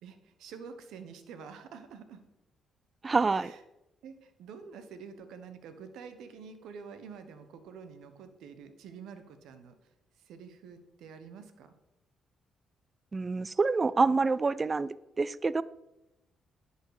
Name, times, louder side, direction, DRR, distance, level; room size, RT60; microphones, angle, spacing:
voice 1, 0.0-2.2 3.3-3.6 4.0-9.8 10.2-11.7, right 6 dB, 85° right, 9 dB, 1.0 m, -48 dB
voice 2, 3.0-3.5 13.1-15.6, right 4 dB, 30° right, 19 dB, 0.4 m, -27 dB
10.5 x 5.6 x 4.9 m, 0.92 s
cardioid pair, 90°, 0 cm